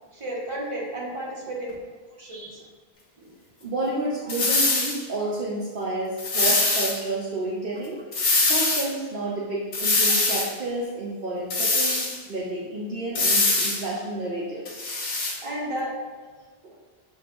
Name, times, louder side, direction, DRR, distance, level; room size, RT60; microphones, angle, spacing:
voice 1, 0.1-1.7 2.2-2.6 3.2-3.3 4.6-4.7 5.2-5.3 6.4-6.5 10.1-10.2 15.4-15.9, right 1 dB, 30° right, -6 dB, 1.1 m, -33 dB
voice 2, 3.6-8.0 8.5-14.8 16.6-16.7, right 2 dB, 65° right, -5 dB, 0.8 m, -30 dB
sound 1, 4.3-5.0 6.2-7.0 8.1-8.9 9.7-10.5 11.5-12.2 13.2-13.8 14.7-15.4, left 2 dB, 50° left, 0.8 m, -23 dB
7.0 x 2.3 x 2.5 m, 1.5 s
omnidirectional pair, 1.0 m